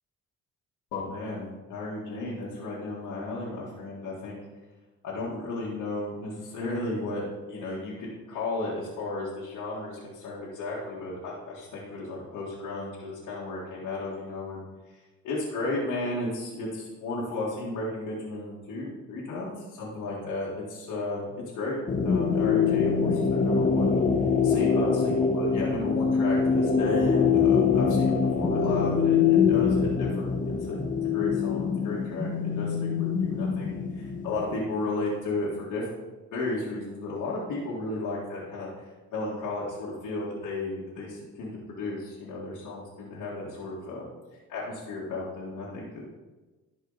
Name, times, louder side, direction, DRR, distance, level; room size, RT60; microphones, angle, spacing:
voice 1, 0.9-4.4 5.0-14.6 15.2-21.8 22.0-23.9 24.4-30.8 31.1-35.9 36.3-38.7 39.1-44.1 44.5-46.0, left 2 dB, 85° left, -7 dB, 1.9 m, -34 dB
sound 1, 21.9-34.5, left 6 dB, 25° left, 0.9 m, -24 dB
12.0 x 4.9 x 4.0 m, 1.2 s
cardioid pair, 90°, 30 cm